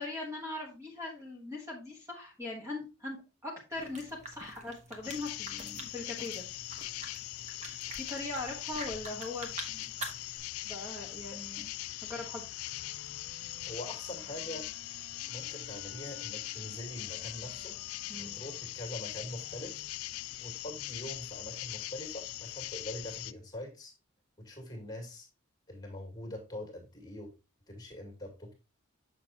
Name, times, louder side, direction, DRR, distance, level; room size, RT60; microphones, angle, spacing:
voice 1, 0.0-3.2 3.4-6.4 7.9-9.9 10.6-11.7 12.0-12.4 18.1-18.3, left 2 dB, 15° right, -2 dB, 1.3 m, -40 dB
sound 1, 3.7-10.4, right 2 dB, 35° right, 1.2 m, -46 dB
sound 2, 5.0-23.3, left 17 dB, 85° left, 0.3 m, -41 dB
Wind instrument woodwind instrument, 12.6-20.0, equal, 90° right, 1.5 m, -57 dB
voice 2, 13.6-14.7 15.3-17.7 18.2-19.8 20.4-23.9 24.4-25.3 25.7-27.3 27.7-28.5, left 1 dB, 20° left, 2 dB, 2.1 m, -43 dB
6.9 x 6.3 x 2.8 m, 0.30 s
head